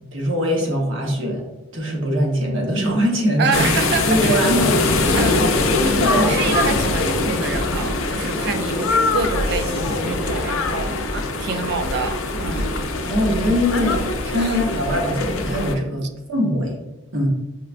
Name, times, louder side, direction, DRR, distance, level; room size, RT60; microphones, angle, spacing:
voice 1, 0.1-1.4 1.7-3.6 4.1-4.9 5.2-5.3 6.0-6.3 13.0-16.7 17.1-17.3, equal, 70° right, 0 dB, 0.9 m, -22 dB
voice 2, 3.4-4.4 5.1-5.4 5.8-12.8 14.4-14.6, right 4 dB, 55° right, 7 dB, 0.3 m, -27 dB
sound 1, 3.5-15.8, left 2 dB, 80° left, 0.4 m, -22 dB
5.5 x 2.2 x 2.4 m, 0.99 s
head